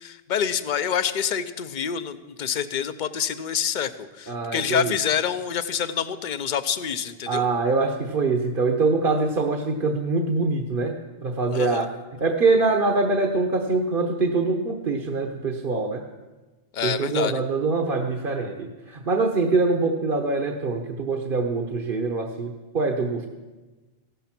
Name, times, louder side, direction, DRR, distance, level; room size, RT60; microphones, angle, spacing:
voice 1, 0.0-7.4 11.5-11.9 16.7-17.3, left 8 dB, 50° left, 13 dB, 0.8 m, -27 dB
voice 2, 4.3-4.9 7.3-10.9 11.2-11.9 12.2-16.0 16.8-23.3, right 3 dB, 55° right, 4 dB, 1.2 m, -24 dB
15.0 x 12.5 x 6.0 m, 1.2 s
omnidirectional pair, 1.1 m